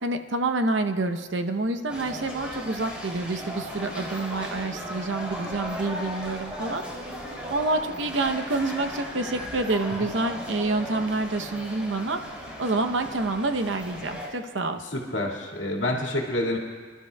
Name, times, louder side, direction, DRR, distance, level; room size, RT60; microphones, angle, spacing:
voice 1, 0.0-6.8 7.5-12.2 12.6-14.8, right 2 dB, 75° right, 7 dB, 0.8 m, -27 dB
sound 1, 1.9-14.3, equal, 5° right, 2.8 m, -37 dB
voice 2, 14.9-16.6, left 1 dB, 80° left, -1 dB, 2.0 m, -28 dB
29.0 x 12.0 x 2.3 m, 1.5 s
head